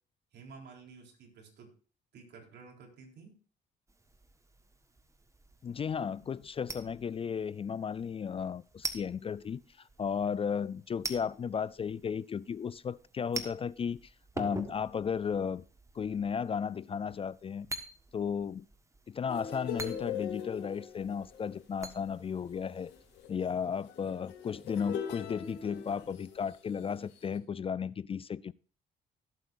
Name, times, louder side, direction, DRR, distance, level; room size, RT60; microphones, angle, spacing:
voice 1, 0.3-1.7 2.1-3.4, right 4 dB, 70° right, 3.8 m, -52 dB
sound 1, 3.9-23.2, right 2 dB, 15° right, 1.4 m, -47 dB
voice 2, 5.6-14.1 14.4-15.6 15.9-17.7 18.1-18.7 19.1-22.9 23.3-28.5, left 7 dB, 30° left, 0.3 m, -34 dB
sound 2, 19.3-26.5 27.2-27.4, left 8 dB, 85° left, 2.5 m, -41 dB
17.0 x 8.1 x 2.6 m
cardioid pair, 90°, 18 cm